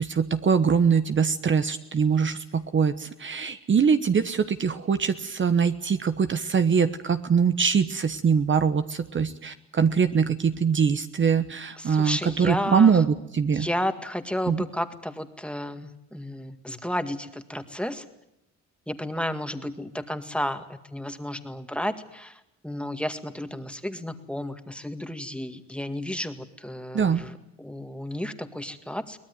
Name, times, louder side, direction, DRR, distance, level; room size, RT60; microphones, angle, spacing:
voice 1, 0.0-13.7 14.5-14.6 26.9-27.2, right 6 dB, 40° right, 10 dB, 1.2 m, -23 dB
voice 2, 11.8-13.0 13.5-18.1 18.9-29.2, left 1 dB, 5° left, 8 dB, 2.0 m, -32 dB
23.0 x 18.5 x 9.7 m, 0.83 s
cardioid pair, 90°, 30 cm